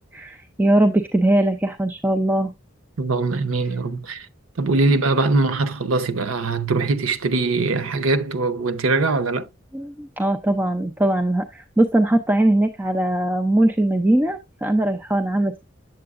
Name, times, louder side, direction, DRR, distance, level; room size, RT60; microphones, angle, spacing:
voice 1, 0.1-2.5 9.7-15.6, right 1 dB, 10° right, 0.4 m, -20 dB
voice 2, 3.0-4.3 4.6-9.5, right 3 dB, 85° right, 0.7 m, -22 dB
7.8 x 7.6 x 2.4 m
head